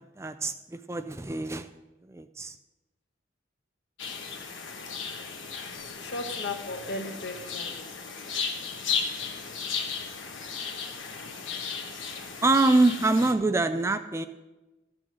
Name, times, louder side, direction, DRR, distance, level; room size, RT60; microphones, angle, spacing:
voice 1, 0.2-1.7 2.1-2.5 12.4-14.3, right 2 dB, 15° right, 10 dB, 0.3 m, -25 dB
sound 1, 4.0-13.3, left 6 dB, 90° left, 1.2 m, -35 dB
voice 2, 4.7-5.3 6.0-7.7, left 2 dB, 60° left, 5 dB, 1.1 m, -37 dB
14.0 x 6.2 x 6.2 m, 1.1 s
head